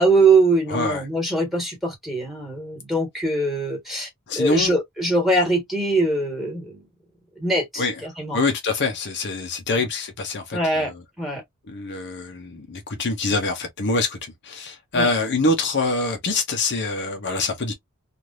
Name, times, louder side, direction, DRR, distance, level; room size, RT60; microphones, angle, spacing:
voice 1, 0.0-4.1 4.3-6.8 7.4-8.4 9.7-9.9 10.5-10.9 11.2-11.4 14.9-15.1, right 2 dB, ahead, 1.5 m, -22 dB
voice 2, 0.7-1.0 4.3-4.7 7.8-7.9 8.3-10.9 11.7-17.7, left 3 dB, 50° left, 0.7 m, -25 dB
3.2 x 2.5 x 2.5 m
head